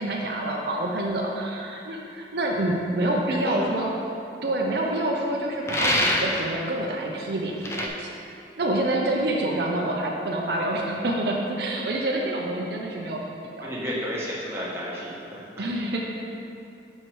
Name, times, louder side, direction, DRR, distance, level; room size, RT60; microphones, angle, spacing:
voice 1, 0.0-3.9 4.4-8.1 8.6-13.3 13.6-13.7 15.6-16.0, right 1 dB, 65° right, -1 dB, 0.6 m, -27 dB
voice 2, 3.4-3.8 13.6-15.6, left 1 dB, 15° right, -7 dB, 1.2 m, -32 dB
sound 1, 5.7-6.5 7.6-7.9, left 1 dB, 15° left, 0.5 m, -24 dB
6.4 x 4.7 x 4.6 m, 2.7 s
head